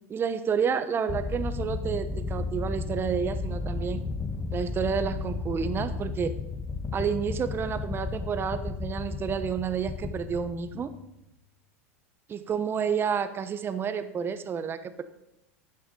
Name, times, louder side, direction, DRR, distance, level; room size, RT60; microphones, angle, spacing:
voice 1, 0.1-4.0 4.5-6.3 6.9-10.9 12.3-15.0, right 7 dB, 30° right, 11 dB, 1.0 m, -30 dB
sound 1, 1.1-11.2, left 4 dB, 20° left, 1.1 m, -33 dB
12.0 x 9.4 x 3.9 m, 0.84 s
hypercardioid pair, 90°, 8 cm